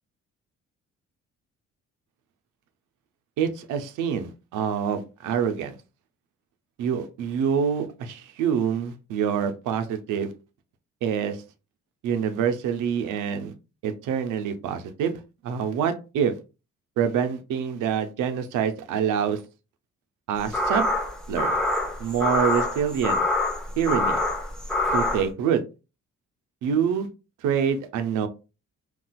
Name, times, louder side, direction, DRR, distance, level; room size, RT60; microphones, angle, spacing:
voice 1, 3.4-5.7 6.8-10.3 11.0-11.4 12.0-13.5 13.8-15.1 15.4-16.4 17.0-19.4 20.3-20.9 21.3-21.6 22.0-23.2 23.8-24.2 24.9-25.6 26.6-27.1 27.4-28.3, right 7 dB, 90° right, 8 dB, 0.6 m, -26 dB
sound 1, 20.4-25.3, left 2 dB, ahead, 0.8 m, -25 dB
4.0 x 2.4 x 2.2 m, 0.31 s
cardioid pair, 90°, 30 cm